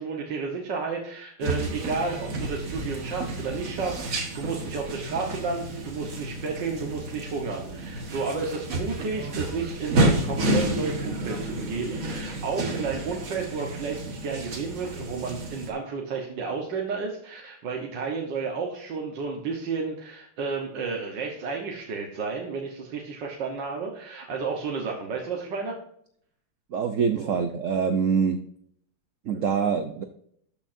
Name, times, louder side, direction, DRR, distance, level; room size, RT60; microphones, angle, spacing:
voice 1, 0.0-25.8 27.2-27.3 29.3-29.6, right 4 dB, 60° right, 0 dB, 1.8 m, -32 dB
sound 1, 1.4-15.7, right 1 dB, 45° right, 1.8 m, -30 dB
voice 2, 26.7-28.4 29.2-30.0, right 6 dB, 80° right, 8 dB, 0.7 m, -25 dB
13.0 x 7.1 x 2.6 m, 0.66 s
omnidirectional pair, 2.3 m